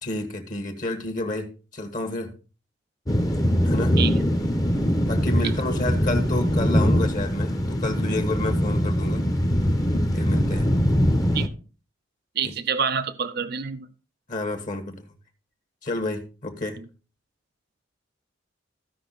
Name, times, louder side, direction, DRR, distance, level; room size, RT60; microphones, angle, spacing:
voice 1, 0.0-2.3 3.6-4.0 5.1-9.3 10.1-10.7 12.4-12.5 14.3-15.1 15.8-16.8, left 2 dB, 45° left, 6 dB, 1.7 m, -30 dB
sound 1, 3.1-11.5, equal, 20° left, 1.1 m, -22 dB
voice 2, 12.4-13.9, right 6 dB, 55° right, 11 dB, 0.7 m, -27 dB
15.5 x 5.5 x 4.1 m, 0.34 s
head